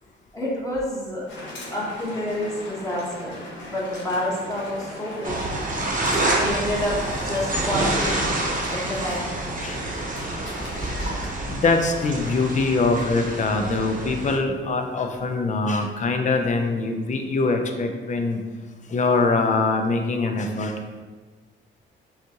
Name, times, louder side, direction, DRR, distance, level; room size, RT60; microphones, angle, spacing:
voice 1, 0.3-1.2 1.7-5.6 6.4-6.9 7.2-8.3 8.7-9.3, left 1 dB, 15° left, -5 dB, 1.2 m, -28 dB
sound 1, 1.3-11.3, left 1 dB, 65° left, 1.4 m, -39 dB
sound 2, 5.2-14.4, right 2 dB, 40° right, 0.9 m, -27 dB
voice 2, 11.5-18.4 18.9-20.7, left 3 dB, 40° left, 4 dB, 0.5 m, -23 dB
5.6 x 2.4 x 2.9 m, 1.3 s
cardioid pair, 90°, 20 cm